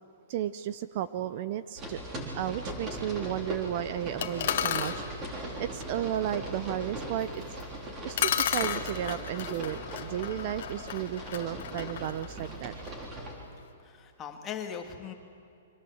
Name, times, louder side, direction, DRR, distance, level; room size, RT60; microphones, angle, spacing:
voice 1, 0.3-2.0 2.3-7.4 8.0-12.7, right 12 dB, 35° right, 14 dB, 0.6 m, -34 dB
sound 1, 1.8-13.3, right 1 dB, 15° right, 3.8 m, -39 dB
sound 2, 4.2-5.0 7.6-7.7 8.2-13.0, left 9 dB, 50° left, 1.7 m, -33 dB
voice 2, 13.8-15.1, left 8 dB, 15° left, 3 dB, 2.0 m, -39 dB
29.0 x 24.5 x 7.9 m, 2.7 s
hypercardioid pair, 175°, 0 cm